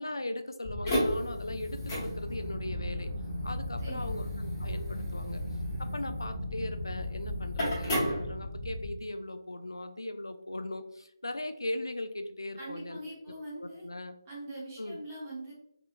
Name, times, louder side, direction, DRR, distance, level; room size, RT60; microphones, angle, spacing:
voice 1, 0.0-3.1 3.4-5.4 5.8-13.0 13.6-14.2 14.8-15.0, left 1 dB, 70° left, 7 dB, 0.4 m, -38 dB
sound 1, 0.6-8.9, left 1 dB, 15° left, 0.9 m, -33 dB
voice 2, 3.8-4.2 12.6-13.9 14.3-15.5, right 1 dB, 15° right, -6 dB, 0.8 m, -42 dB
3.6 x 2.8 x 2.4 m, 0.74 s
figure-of-eight pair, 155°, 2 cm